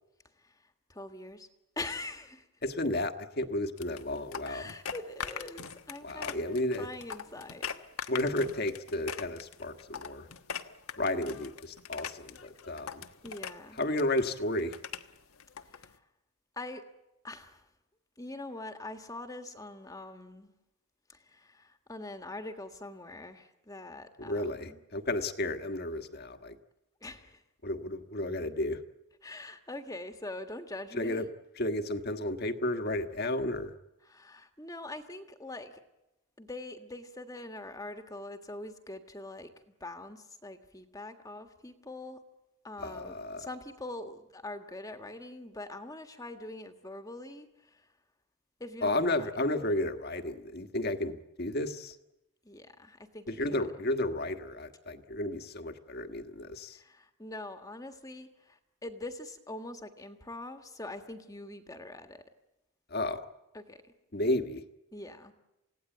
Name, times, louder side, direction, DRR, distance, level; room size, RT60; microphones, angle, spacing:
voice 1, 0.3-1.5 1.7-2.5 4.4-6.5 6.8-7.8 13.2-13.8 15.6-16.1 16.5-16.9 17.2-17.7 18.2-20.5 21.1-24.8 27.0-27.4 29.2-31.3 34.0-35.8 36.4-39.5 39.8-42.2 42.6-47.9 48.6-49.6 52.4-53.2 53.5-53.7 56.7-62.2 63.5-63.8 64.9-65.3, left 2 dB, 15° left, 6 dB, 1.6 m, -43 dB
voice 2, 2.6-4.7 6.0-6.9 8.1-10.3 11.0-13.0 13.8-14.7 24.2-26.6 27.6-28.8 30.9-31.3 31.6-33.7 42.8-43.4 48.8-51.9 53.3-56.8 62.9-63.2 64.1-64.6, left 1 dB, 45° left, 8 dB, 1.5 m, -32 dB
sound 1, 3.8-15.9, left 7 dB, 80° left, 1.3 m, -42 dB
29.0 x 17.0 x 9.1 m, 0.97 s
head